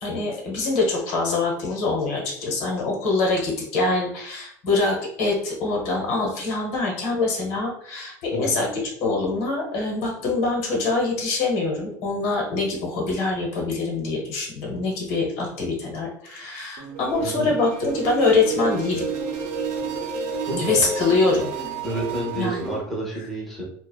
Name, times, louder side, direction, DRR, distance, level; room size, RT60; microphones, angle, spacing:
voice 1, 0.0-19.1 20.6-21.5 22.3-22.6, left 3 dB, 75° left, -1 dB, 1.0 m, -24 dB
sound 1, 16.8-22.8, right 5 dB, 65° right, 0.6 m, -30 dB
voice 2, 17.2-17.5 20.4-20.8 21.8-23.6, right 1 dB, ahead, -4 dB, 0.5 m, -30 dB
2.4 x 2.3 x 2.3 m, 0.69 s
cardioid pair, 160°, 8 cm